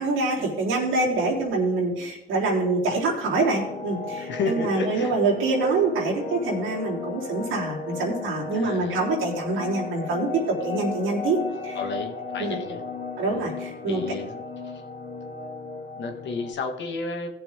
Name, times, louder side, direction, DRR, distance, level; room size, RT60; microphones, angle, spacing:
voice 1, 0.0-11.4 11.6-11.8 12.4-12.6 13.2-14.0, right 3 dB, 85° right, -3 dB, 3.4 m, -25 dB
sound 1, 3.3-16.5, left 4 dB, 45° left, 2.4 m, -35 dB
voice 2, 4.2-5.1 8.5-9.0 11.8-12.8 13.3-13.5 13.8-14.4 14.6-14.8 16.0-17.3, left 3 dB, 65° left, 4 dB, 1.8 m, -32 dB
17.0 x 6.9 x 3.7 m, 0.90 s
cardioid pair, 90°, 20 cm